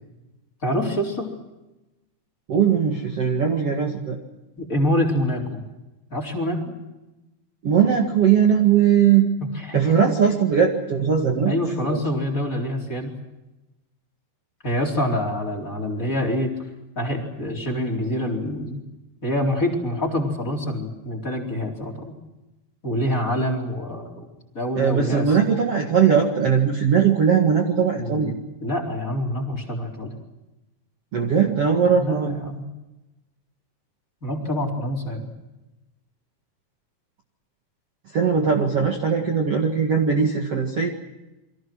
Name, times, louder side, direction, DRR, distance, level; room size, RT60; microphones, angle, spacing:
voice 1, 0.6-1.3 4.6-5.6 6.1-6.6 9.5-10.1 11.4-13.1 14.6-16.5 17.0-18.8 19.2-22.2 22.8-24.3 24.5-25.3 27.9-28.3 28.6-30.1 32.0-32.6 34.2-35.3, left 1 dB, 20° left, 3 dB, 4.2 m, -26 dB
voice 2, 2.5-4.2 7.6-9.3 9.7-11.6 11.9-12.0 24.8-28.3 31.1-32.4 38.1-40.9, right 7 dB, 45° right, 2 dB, 2.4 m, -19 dB
30.0 x 24.0 x 6.3 m, 1.0 s
omnidirectional pair, 4.6 m